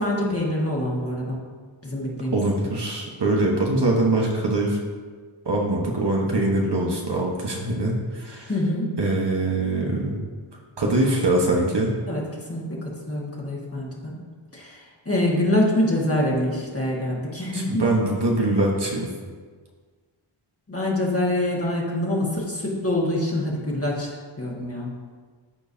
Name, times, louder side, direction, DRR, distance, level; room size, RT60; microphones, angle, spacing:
voice 1, 0.0-1.4 1.8-2.4 8.5-8.9 12.0-14.2 14.5-17.9 20.7-24.9, left 1 dB, 25° left, -4 dB, 1.7 m, -25 dB
voice 2, 2.3-4.8 5.4-8.5 9.0-10.2 10.8-11.9 17.5-19.1, right 2 dB, 55° right, -1 dB, 1.3 m, -23 dB
13.5 x 4.6 x 2.8 m, 1.5 s
wide cardioid pair, 70°, 50 cm